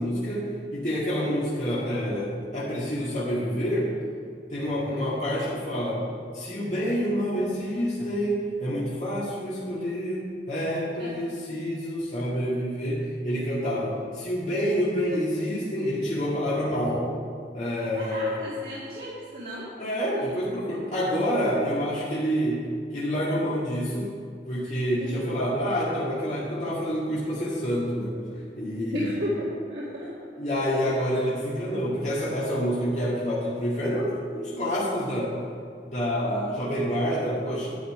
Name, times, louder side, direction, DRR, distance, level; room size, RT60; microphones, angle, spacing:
voice 1, 0.0-3.9 4.5-6.0 6.3-17.1 17.5-18.4 19.8-22.7 22.9-24.1 24.5-28.2 28.6-29.2 30.4-35.3 35.9-37.8, equal, 40° left, -8 dB, 2.0 m, -27 dB
voice 2, 18.0-19.7 20.2-20.3 25.0-25.3 28.9-30.1 30.5-30.6, equal, 60° right, -7 dB, 1.8 m, -34 dB
9.6 x 9.5 x 4.9 m, 2.2 s
head